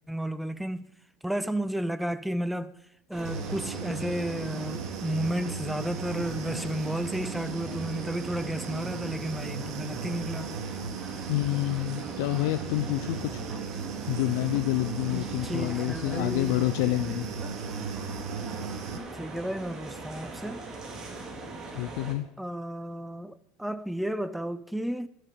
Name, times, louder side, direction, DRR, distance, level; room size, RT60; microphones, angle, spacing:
voice 1, 0.1-0.9 1.2-2.8 3.1-10.6 15.1-16.6 19.1-20.6 22.4-25.1, right 1 dB, ahead, 0.7 m, -32 dB
sound 1, 3.1-22.1, right 3 dB, 25° right, 3.5 m, -41 dB
Human voice / Buzz, 3.2-19.0, right 5 dB, 75° right, 1.6 m, -37 dB
voice 2, 11.3-13.4 14.1-17.3 21.7-22.3, left 17 dB, 70° left, 0.7 m, -28 dB
14.5 x 6.9 x 9.7 m
hypercardioid pair, 85°, 2 cm